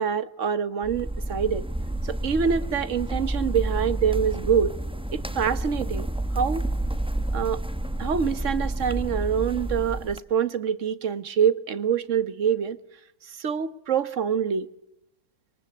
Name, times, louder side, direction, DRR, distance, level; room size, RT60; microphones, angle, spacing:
voice 1, 0.0-1.6 2.0-4.7 5.1-6.1 6.3-6.7 7.3-7.6 8.0-12.8 13.3-14.7, right 7 dB, 55° right, 1.6 m, -25 dB
sound 1, 0.8-10.2, right 1 dB, 5° right, 0.9 m, -30 dB
27.0 x 22.5 x 8.5 m
omnidirectional pair, 1.6 m